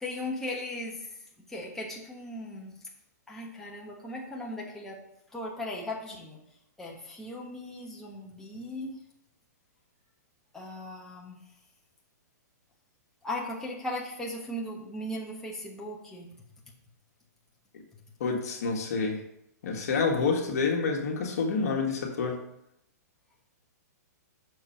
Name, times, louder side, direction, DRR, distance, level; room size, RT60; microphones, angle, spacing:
voice 1, 0.0-1.1 1.5-2.7 3.3-5.0 5.3-6.4 6.8-9.0 10.5-11.4 13.2-16.3, left 1 dB, 5° left, -4 dB, 1.2 m, -37 dB
voice 2, 18.2-19.2 19.6-22.4, left 4 dB, 65° left, 2 dB, 1.6 m, -28 dB
6.5 x 4.7 x 5.7 m, 0.80 s
hypercardioid pair, 145°, 9 cm